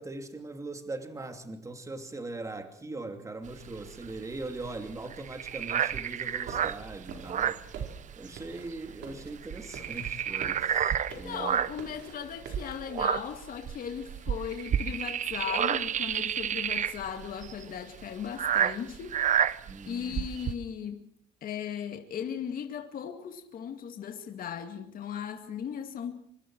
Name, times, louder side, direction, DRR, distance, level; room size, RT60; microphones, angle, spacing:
voice 1, 0.0-7.6 8.2-11.6 19.7-20.3, right 2 dB, 15° right, 2.7 m, -40 dB
sound 1, 3.5-8.4 8.7-8.9 9.2-11.9 12.4-20.5, right 9 dB, 45° right, 0.9 m, -30 dB
sound 2, 6.5-12.8, right 5 dB, 75° right, 4.4 m, -47 dB
voice 2, 11.1-19.2 19.8-21.1 21.4-26.2, left 8 dB, 55° left, 2.4 m, -37 dB
25.5 x 24.5 x 4.7 m
cardioid pair, 135°, 18 cm